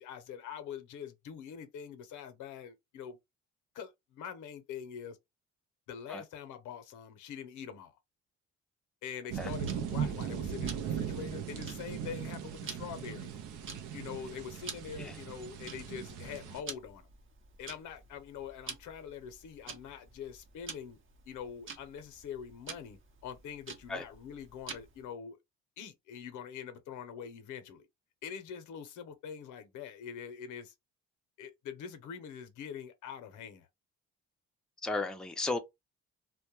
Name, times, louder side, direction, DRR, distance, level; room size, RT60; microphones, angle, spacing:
voice 1, 0.0-3.2 3.7-5.2 5.9-7.9 9.0-13.3 13.9-17.1 17.6-21.0 21.3-25.4 25.8-27.9 28.2-30.7 31.4-33.7, left 8 dB, 85° left, 0.7 m, -44 dB
sound 1, 9.3-16.6, right 8 dB, 80° right, 0.5 m, -38 dB
Tick-tock, 9.7-25.1, right 5 dB, 40° right, 0.7 m, -50 dB
voice 2, 34.8-35.6, left 3 dB, ahead, 0.4 m, -34 dB
2.2 x 2.1 x 3.0 m
cardioid pair, 90°, 30 cm